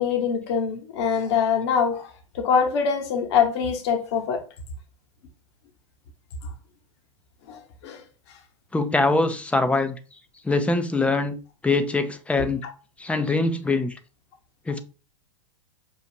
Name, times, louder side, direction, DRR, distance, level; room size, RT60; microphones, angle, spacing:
voice 1, 0.0-2.1 2.3-4.4 7.5-8.0, left 6 dB, 55° left, 1.1 m, -24 dB
voice 2, 8.7-9.9 10.4-11.4 11.6-12.6 13.0-13.9 14.7-14.8, left 3 dB, 5° left, 0.5 m, -23 dB
5.9 x 2.4 x 2.8 m
hypercardioid pair, 105°, 16 cm